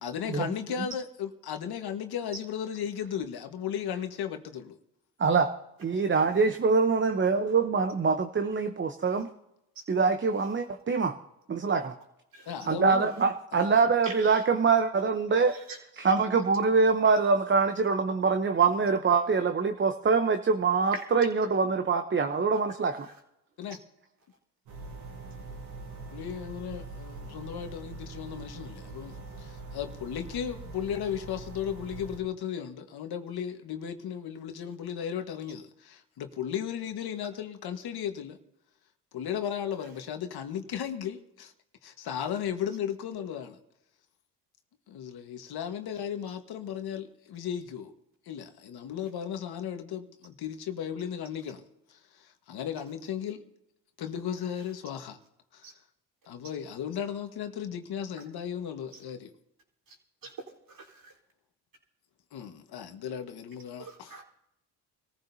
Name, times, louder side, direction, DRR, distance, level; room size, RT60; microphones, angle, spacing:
voice 1, 0.0-4.8 12.4-13.1 13.5-13.6 23.6-23.8 26.0-38.4 39.1-41.5 41.8-43.6 44.9-47.9 48.2-51.6 51.9-53.4 54.0-55.2 55.5-55.6 56.2-59.3 62.3-64.1, left 8 dB, 60° left, 1.6 m, -35 dB
voice 2, 5.2-5.5 5.8-9.3 9.9-11.1 11.5-11.9 12.7-15.5 16.0-23.1, right 4 dB, 25° right, 0.9 m, -24 dB
voice 3, 14.0-14.4 15.5-15.8 20.9-21.0 23.0-23.1 55.6-55.7 59.9-60.0 60.2-60.3 60.7-61.1 63.8-64.2, right 3 dB, 50° right, 4.2 m, -42 dB
sound 1, 24.7-32.2, right 3 dB, 85° right, 6.3 m, -43 dB
24.5 x 14.5 x 2.8 m
supercardioid pair, 75°, 42 cm